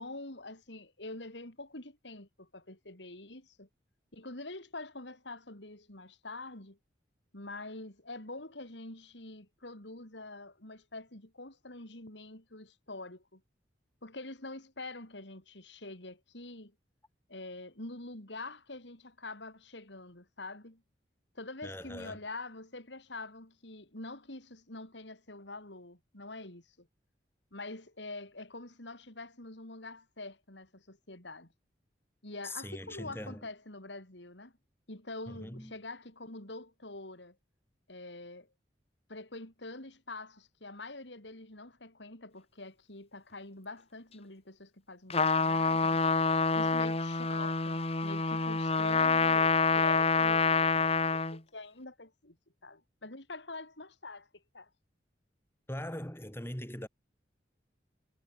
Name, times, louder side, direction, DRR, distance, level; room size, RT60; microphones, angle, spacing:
voice 1, 0.0-3.7 4.1-6.8 7.3-13.4 14.0-16.7 17.3-20.8 21.3-26.9 27.5-31.5 32.2-34.5 34.9-37.4 37.9-38.5 39.1-46.0 46.5-52.4 52.6-54.7, left 2 dB, 80° left, 4.9 m, -45 dB
voice 2, 21.6-22.2 32.4-33.5 35.3-35.8 55.7-56.9, left 1 dB, 15° left, 4.9 m, -41 dB
Trumpet, 45.1-51.4, left 4 dB, 35° left, 2.0 m, -27 dB
head